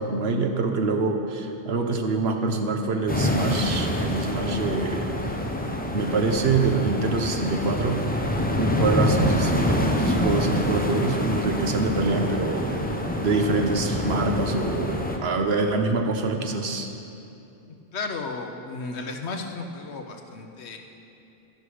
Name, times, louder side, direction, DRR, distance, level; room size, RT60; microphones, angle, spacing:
voice 1, 0.0-5.1 5.9-8.0 8.6-12.7 13.2-16.9, right 3 dB, 65° right, 4 dB, 1.1 m, -25 dB
sound 1, 3.1-15.2, left 1 dB, 10° left, 0.6 m, -26 dB
voice 2, 17.9-20.8, left 3 dB, 75° left, 4 dB, 1.2 m, -34 dB
11.5 x 11.0 x 4.9 m, 2.8 s
omnidirectional pair, 1.1 m